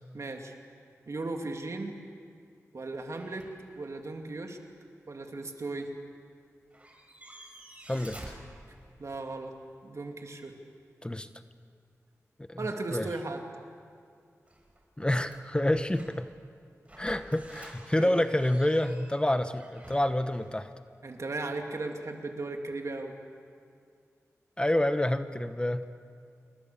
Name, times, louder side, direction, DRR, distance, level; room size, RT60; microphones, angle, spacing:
voice 1, 0.1-0.5 1.1-1.9 2.7-3.5 3.8-4.6 5.1-5.9 9.0-9.5 9.8-10.5 12.6-13.4 17.9-18.2 21.0-23.1, right 2 dB, 60° right, 3 dB, 2.8 m, -36 dB
sound 1, 3.1-3.9 4.2-4.3 6.4-6.5 6.7-9.3 14.5-16.4 16.9-20.6, right 1 dB, 25° right, 6.0 m, -51 dB
voice 2, 7.9-8.2 11.0-11.3 12.5-13.1 15.0-16.3 17.0-20.7 24.6-25.8, left 1 dB, 15° left, 10 dB, 1.1 m, -28 dB
28.0 x 21.0 x 7.0 m, 2.3 s
cardioid pair, 50°, 6 cm